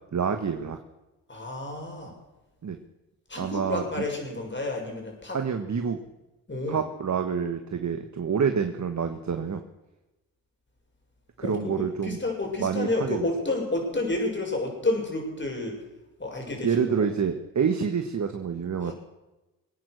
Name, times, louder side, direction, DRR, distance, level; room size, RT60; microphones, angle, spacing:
voice 1, 0.1-0.8 2.6-2.8 3.4-3.8 5.3-6.0 6.7-9.6 11.4-12.2 12.6-13.3 16.6-18.9, right 6 dB, 40° right, 7 dB, 1.6 m, -27 dB
voice 2, 1.3-2.1 3.3-5.4 6.5-6.8 11.4-15.8 16.2-17.1 18.8-18.9, left 2 dB, 25° left, 1 dB, 7.0 m, -30 dB
23.0 x 9.4 x 6.5 m, 1.0 s
hypercardioid pair, 50°, 42 cm